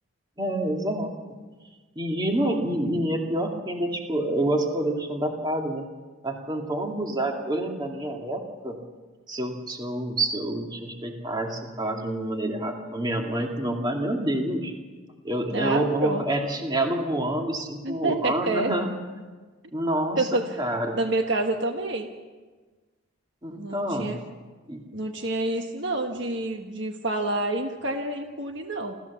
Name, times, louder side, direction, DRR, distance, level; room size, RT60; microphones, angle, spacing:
voice 1, 0.4-1.1 2.0-5.9 6.2-8.8 9.3-14.7 15.2-18.9 19.7-21.0 23.4-24.2 24.7-24.8, right 1 dB, 20° right, 2 dB, 2.2 m, -27 dB
voice 2, 15.5-16.2 17.8-18.7 20.2-20.6 20.9-22.1 23.5-24.2 24.9-28.9, right 2 dB, 55° right, 4 dB, 1.5 m, -28 dB
29.5 x 14.0 x 7.2 m, 1.3 s
head